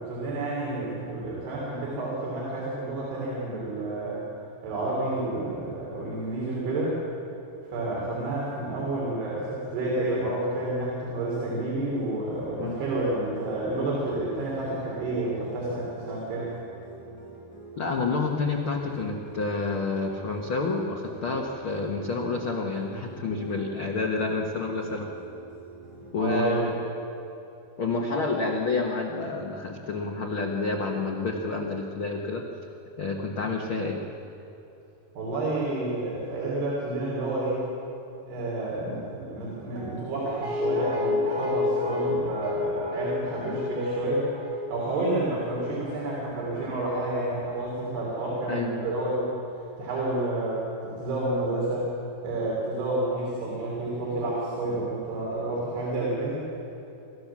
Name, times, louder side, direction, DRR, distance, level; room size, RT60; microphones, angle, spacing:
voice 1, 0.0-4.3 4.6-7.0 7.7-16.5 26.2-26.7 35.2-37.6 38.3-44.3 44.7-49.3 49.8-51.9 52.2-56.4, right 2 dB, 90° right, -5 dB, 5.4 m, -29 dB
sound 1, 11.9-26.1, right 2 dB, 25° right, 6.3 m, -46 dB
voice 2, 17.8-25.1 26.1-26.8 27.8-32.4 33.0-34.0 48.5-48.7, left 3 dB, 80° left, 1 dB, 1.1 m, -29 dB
Guitar, 39.8-46.8 47.1-47.2, left 3 dB, 50° right, 5.0 m, -31 dB
27.5 x 13.5 x 7.3 m, 3.0 s
omnidirectional pair, 4.5 m